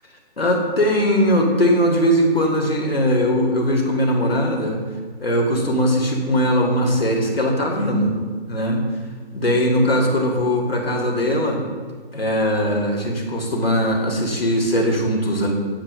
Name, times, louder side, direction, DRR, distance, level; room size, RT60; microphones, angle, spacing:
voice 1, 0.4-4.8 5.2-8.2 8.5-8.8 9.3-11.6 12.1-15.5, equal, 75° left, 1 dB, 1.7 m, -20 dB
9.4 x 7.8 x 2.4 m, 1.5 s
figure-of-eight pair, 145°, 30 cm